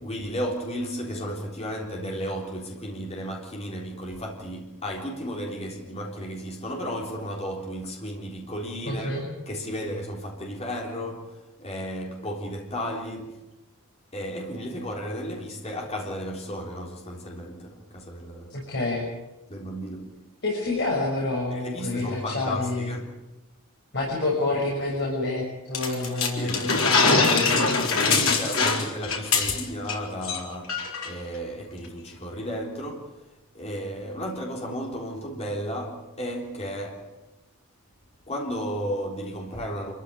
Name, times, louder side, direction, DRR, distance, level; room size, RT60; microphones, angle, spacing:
voice 1, 0.0-9.2 9.5-13.4 14.1-18.5 19.5-20.2 21.5-23.1 26.4-26.6 28.0-33.1 33.5-37.1 38.3-39.9, equal, 30° left, 3.8 m, -34 dB
voice 2, 8.8-9.3 18.5-19.1 20.4-22.9 23.9-28.8, left 2 dB, 55° left, 6.7 m, -28 dB
sound 1, 25.7-30.0 30.2-30.4 30.7-31.1, left 4 dB, 70° left, 4.2 m, -23 dB
27.0 x 14.5 x 9.9 m
head